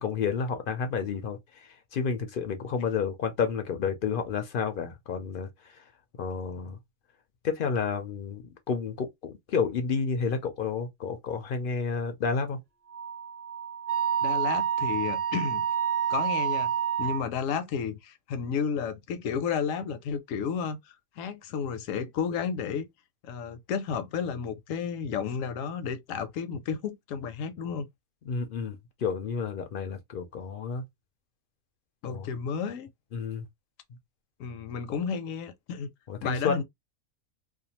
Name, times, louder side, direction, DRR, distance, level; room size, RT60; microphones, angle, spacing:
voice 1, 0.0-1.4 1.9-5.5 6.2-6.8 7.4-12.6 28.3-30.8 32.0-32.3 33.1-33.5 34.9-35.0 36.1-36.6, left 5 dB, 60° left, 0.6 m, -30 dB
Wind instrument woodwind instrument, 12.9-17.2, right 8 dB, 35° right, 0.7 m, -28 dB
voice 2, 14.2-15.7 16.1-16.7 17.0-22.9 23.2-27.9 32.0-32.9 34.4-35.9 36.2-36.6, left 6 dB, 75° left, 0.9 m, -32 dB
2.5 x 2.3 x 2.8 m
omnidirectional pair, 1.4 m